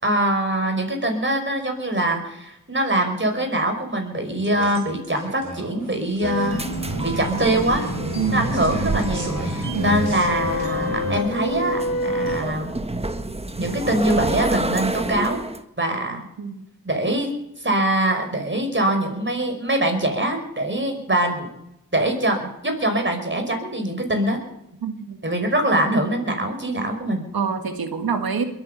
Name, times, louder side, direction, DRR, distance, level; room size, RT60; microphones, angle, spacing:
voice 1, 0.0-6.6 7.0-7.9 8.3-12.7 13.6-15.4 15.8-16.2 16.8-17.3 17.6-21.5 21.9-24.4 25.2-27.2, right 1 dB, 35° right, 4 dB, 5.4 m, -23 dB
sound 1, 4.4-11.2, right 2 dB, 50° right, 4.3 m, -31 dB
sound 2, 6.2-12.4, left 1 dB, 45° left, 4.3 m, -29 dB
sound 3, 6.3-15.6, right 2 dB, 15° right, 1.3 m, -29 dB
voice 2, 8.1-8.5 9.7-9.9 16.4-16.6 24.8-25.2 27.3-28.4, right 6 dB, 85° right, 7 dB, 1.8 m, -26 dB
22.0 x 9.4 x 6.9 m, 0.83 s
cardioid pair, 40°, 35 cm